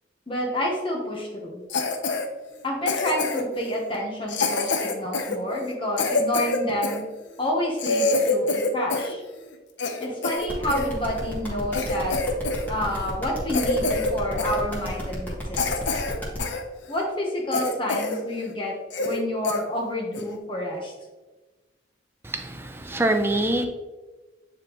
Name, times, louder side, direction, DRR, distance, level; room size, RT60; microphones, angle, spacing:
voice 1, 0.3-1.6 2.6-7.0 7.4-9.2 10.0-12.2 12.7-15.6 16.9-20.9, left 1 dB, 30° left, -1 dB, 1.1 m, -29 dB
Cough, 1.7-2.3 2.9-3.6 4.3-7.0 7.5-7.6 7.8-9.1 9.5-10.9 11.4-11.5 11.7-12.7 12.9-13.1 13.5-14.1 14.4-14.6 15.1-15.2 15.6-16.6 17.0-17.1 17.5-18.2 18.5-18.6 18.9-19.2 19.4-19.6 20.1-20.4, left 3 dB, 70° left, 0.7 m, -26 dB
sound 1, 10.5-16.4, equal, 10° left, 1.6 m, -34 dB
voice 2, 22.2-23.7, right 1 dB, 10° right, 5 dB, 0.5 m, -25 dB
9.2 x 3.5 x 3.0 m, 1.2 s
head